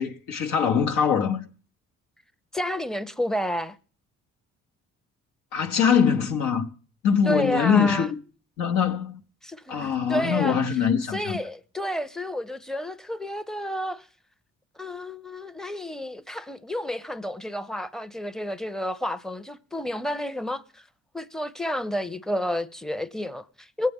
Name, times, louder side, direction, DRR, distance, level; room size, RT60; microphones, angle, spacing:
voice 1, 0.0-1.5 5.5-6.7 7.0-8.2 8.6-9.2 9.7-11.4, left 7 dB, 90° left, 0.9 m, -23 dB
voice 2, 2.5-3.8 7.2-8.1 9.4-10.6 11.1-14.1 14.8-20.8 21.1-23.9, equal, ahead, 0.6 m, -30 dB
20.5 x 8.3 x 3.5 m
cardioid pair, 90°, 30 cm